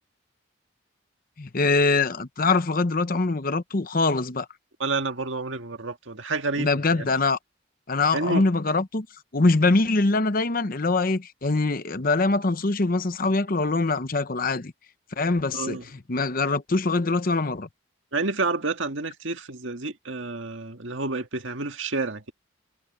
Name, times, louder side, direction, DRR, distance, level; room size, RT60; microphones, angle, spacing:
voice 1, 1.4-4.5 6.6-7.4 7.9-9.1 9.3-14.7 15.2-15.8 16.1-17.7, left 3 dB, 45° left, 0.9 m, -23 dB
voice 2, 4.8-7.1 8.1-8.5 15.5-15.8 18.1-22.3, right 3 dB, 70° right, 1.8 m, -29 dB
head